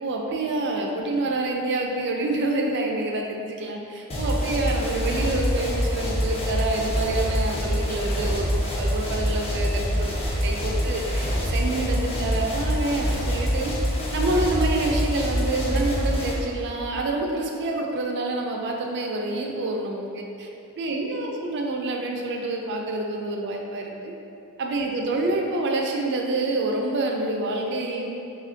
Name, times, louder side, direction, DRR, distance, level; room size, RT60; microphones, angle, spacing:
voice 1, 0.0-13.7 14.1-20.5 20.8-24.1 24.6-28.0, right 2 dB, 55° right, 1 dB, 0.4 m, -27 dB
sound 1, 4.1-16.3, equal, 30° left, 0.5 m, -25 dB
2.8 x 2.4 x 3.7 m, 2.7 s
head